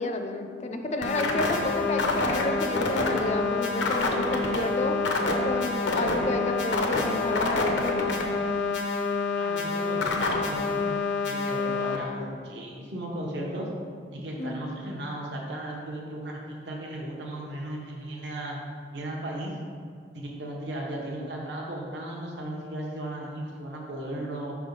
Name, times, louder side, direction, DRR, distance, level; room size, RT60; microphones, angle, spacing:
voice 1, 0.0-5.0 5.4-8.2 14.4-14.6, left 2 dB, 40° left, 5 dB, 0.4 m, -30 dB
sound 1, 1.0-12.0, left 3 dB, 80° left, 0.7 m, -27 dB
voice 2, 9.4-10.8 11.2-13.7 14.1-18.6 18.9-19.6 20.1-24.6, right 1 dB, 75° right, -2 dB, 0.8 m, -36 dB
5.7 x 3.5 x 5.3 m, 2.3 s
head